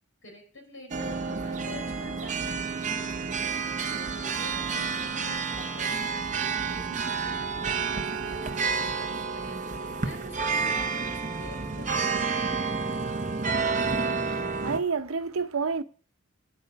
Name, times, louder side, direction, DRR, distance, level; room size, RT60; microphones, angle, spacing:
voice 1, 0.2-6.0 6.4-12.9, left 1 dB, 70° left, 4.9 m, -47 dB
sound 1, 0.9-14.8, right 5 dB, 35° right, 0.9 m, -30 dB
voice 2, 14.0-15.8, right 5 dB, 85° right, 0.8 m, -30 dB
9.3 x 8.7 x 6.7 m
head